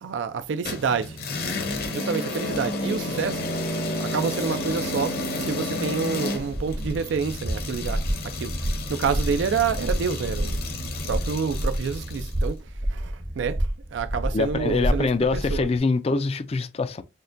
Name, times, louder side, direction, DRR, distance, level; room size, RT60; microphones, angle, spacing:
voice 1, 0.0-1.2 1.8-3.5 4.0-8.5 8.9-10.6 11.1-13.6 13.9-15.7, right 6 dB, 75° right, 0.4 m, -28 dB
sound 1, 0.6-12.4, left 2 dB, 55° left, 0.9 m, -31 dB
sound 2, 6.3-15.8, right 1 dB, 45° right, 0.8 m, -29 dB
voice 2, 14.3-17.0, left 4 dB, 30° left, 0.3 m, -24 dB
6.4 x 2.2 x 2.5 m
head